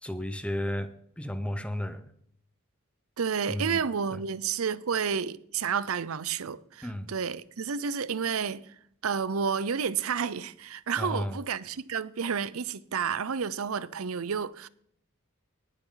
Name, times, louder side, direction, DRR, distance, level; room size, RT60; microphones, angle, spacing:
voice 1, 0.0-0.9 1.2-2.1 3.5-4.2 6.8-7.1 11.0-11.4, left 1 dB, 5° left, 0.8 m, -33 dB
voice 2, 3.2-8.7 9.0-14.7, right 6 dB, 85° right, 0.6 m, -30 dB
19.0 x 7.4 x 3.9 m
head